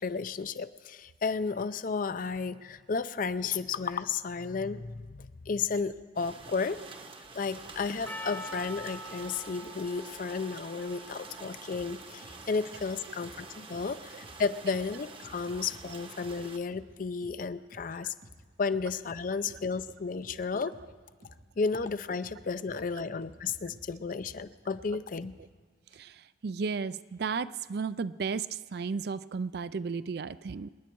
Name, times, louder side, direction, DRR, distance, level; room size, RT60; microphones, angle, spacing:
voice 1, 0.0-6.8 7.3-18.1 18.6-20.7 21.6-25.4, left 5 dB, 45° left, 14 dB, 0.5 m, -33 dB
sound 1, 6.2-16.6, right 3 dB, 30° right, 0.9 m, -47 dB
Percussion, 8.1-13.3, left 1 dB, 10° left, 0.7 m, -46 dB
sound 2, 11.7-11.9 12.2-12.4 12.7-12.9 13.2-13.4 13.7-13.9 14.2-14.4 14.7-14.9 15.2-15.9 16.2-16.4 16.7-16.9 17.2-17.4 17.7-17.9 18.2-18.4 18.7-19.9 20.2-20.4 20.7-20.9 21.2-21.4 21.7-21.9 22.2-22.4 22.7-22.9 23.2-23.9 24.2-24.4 24.7-24.9 25.2-25.4, right 1 dB, 80° right, 3.7 m, -52 dB
voice 2, 25.9-30.7, right 5 dB, 60° right, 15 dB, 0.4 m, -34 dB
26.5 x 10.5 x 4.6 m, 1.5 s
head